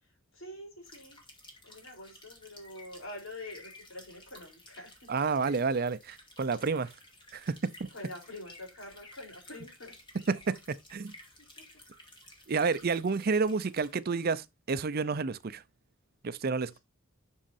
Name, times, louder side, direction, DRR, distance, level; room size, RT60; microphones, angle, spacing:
voice 1, 0.0-1.2 1.6-5.1 7.9-10.0 11.6-11.7 12.5-12.7 16.7-16.8, left 1 dB, 70° left, 3.7 m, -46 dB
sound 1, 0.8-13.9, left 1 dB, 25° left, 2.4 m, -54 dB
voice 2, 5.1-6.9 7.3-7.9 10.3-10.6 10.9-11.1 12.5-15.6 16.2-16.8, right 4 dB, 45° right, 0.5 m, -30 dB
11.5 x 6.4 x 2.6 m
head